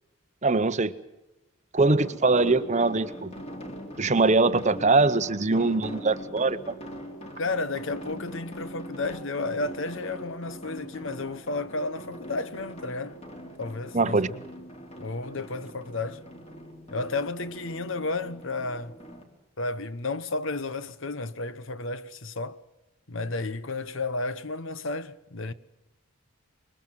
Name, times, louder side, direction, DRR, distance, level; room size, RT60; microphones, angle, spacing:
voice 1, 0.4-0.9 1.7-3.3 4.0-6.7 13.9-14.3, right 3 dB, 30° right, 0.8 m, -22 dB
sound 1, 2.0-19.2, equal, 30° left, 3.1 m, -42 dB
voice 2, 7.4-13.2 13.6-14.4 15.0-16.2 16.9-19.0 19.6-22.6 23.1-25.5, left 3 dB, 55° left, 1.0 m, -32 dB
25.5 x 22.0 x 7.6 m
head